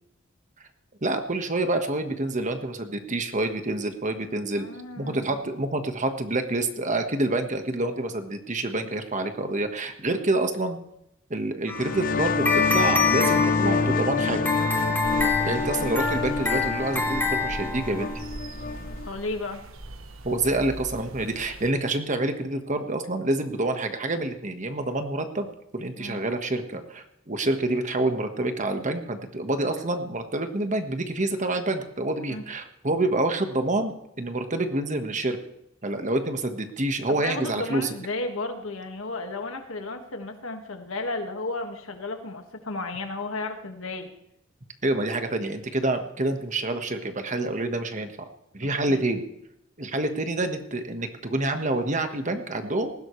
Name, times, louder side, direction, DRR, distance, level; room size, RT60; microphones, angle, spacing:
voice 1, 1.0-4.6 5.0-10.8 11.3-14.5 15.4-18.1 20.2-35.4 35.8-37.9 44.8-48.3 48.5-49.2 49.8-52.9, right 2 dB, 35° right, 7 dB, 1.4 m, -27 dB
voice 2, 4.6-5.4 19.0-19.6 26.0-26.2 32.3-32.4 37.2-44.1 48.6-49.0, left 2 dB, 80° left, 5 dB, 1.8 m, -33 dB
sound 1, 11.7-19.1, left 4 dB, 45° left, 0.6 m, -27 dB
sound 2, 11.7-18.2, left 4 dB, 10° left, 2.8 m, -27 dB
sound 3, 15.0-21.7, right 1 dB, 80° right, 1.2 m, -40 dB
19.5 x 16.0 x 3.3 m, 0.79 s
head